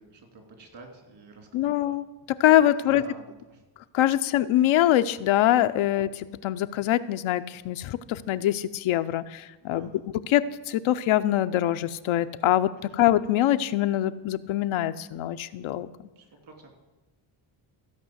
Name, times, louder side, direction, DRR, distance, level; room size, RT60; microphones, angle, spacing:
voice 1, 0.0-2.0 2.4-3.6 4.0-4.2 5.9-6.0 9.6-10.1 12.8-13.0 16.1-16.8, right 2 dB, 60° right, 3 dB, 3.4 m, -48 dB
voice 2, 1.5-3.0 3.9-15.9, left 13 dB, 80° left, 10 dB, 0.7 m, -24 dB
15.0 x 5.6 x 8.0 m, 1.1 s
cardioid pair, 90°, 47 cm